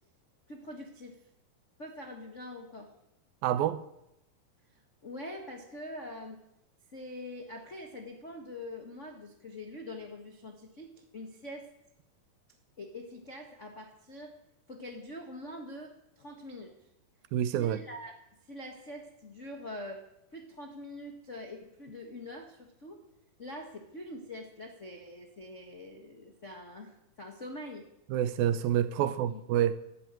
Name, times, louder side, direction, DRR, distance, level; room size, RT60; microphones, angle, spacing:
voice 1, 0.5-1.3 1.8-2.9 4.7-6.4 6.9-11.7 12.8-14.4 14.7-16.9 17.6-18.1 18.4-20.0 20.3-23.0 23.4-27.9 29.0-29.4, left 1 dB, 85° left, 0.6 m, -44 dB
voice 2, 3.4-3.8 17.3-17.8 28.1-29.8, right 11 dB, 75° right, 2.3 m, -28 dB
13.0 x 12.0 x 9.0 m
omnidirectional pair, 4.6 m